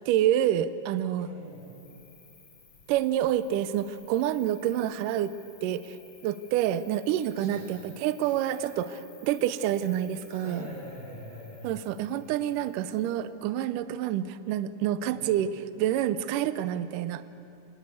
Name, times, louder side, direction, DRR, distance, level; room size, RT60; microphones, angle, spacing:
voice 1, 0.1-1.3 2.9-5.3 5.6-6.0 6.2-10.7 11.6-17.2, right 11 dB, 80° right, 13 dB, 2.0 m, -28 dB
voice 2, 1.2-1.7 7.4-7.8 8.2-8.4 10.3-11.7 15.1-15.3, left 1 dB, 20° left, -9 dB, 6.1 m, -44 dB
Cricket, 1.4-13.4, left 4 dB, 45° left, 4.9 m, -57 dB
24.0 x 20.0 x 8.3 m, 2.7 s
omnidirectional pair, 4.5 m